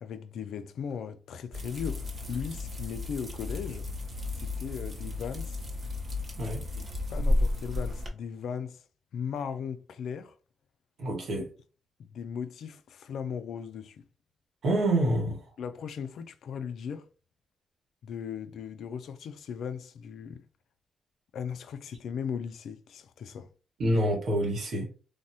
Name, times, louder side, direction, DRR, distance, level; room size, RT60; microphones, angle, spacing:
voice 1, 0.0-3.9 4.4-5.6 6.8-8.8 9.1-10.4 11.4-11.5 12.0-14.0 15.6-17.1 18.0-20.4 21.3-23.5, left 7 dB, 80° left, 0.3 m, -37 dB
sound 1, 1.5-8.1, left 2 dB, 45° right, 0.7 m, -33 dB
voice 2, 11.0-11.4 14.6-15.4 23.8-24.9, right 1 dB, 75° right, 1.0 m, -27 dB
3.4 x 2.0 x 2.6 m
cardioid pair, 70°, 0 cm